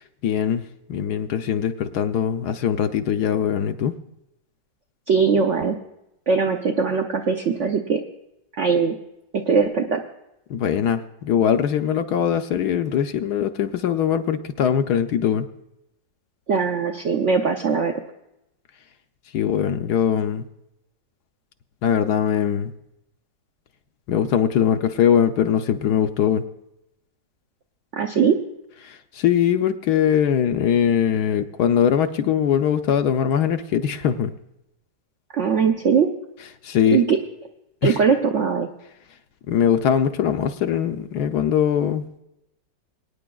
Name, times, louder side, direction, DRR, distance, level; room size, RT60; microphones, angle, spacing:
voice 1, 0.2-3.9 10.5-15.5 19.3-20.4 21.8-22.7 24.1-26.4 28.8-34.3 36.6-37.0 37.8-38.0 39.5-42.2, left 8 dB, 70° left, 8 dB, 1.0 m, -21 dB
voice 2, 5.1-5.8 6.3-8.0 8.6-9.0 9.3-10.0 16.5-17.9 27.9-28.4 35.3-36.1 36.9-37.2 37.8-38.7, right 5 dB, 70° right, 3 dB, 0.7 m, -20 dB
24.0 x 9.4 x 2.3 m, 0.86 s
omnidirectional pair, 2.0 m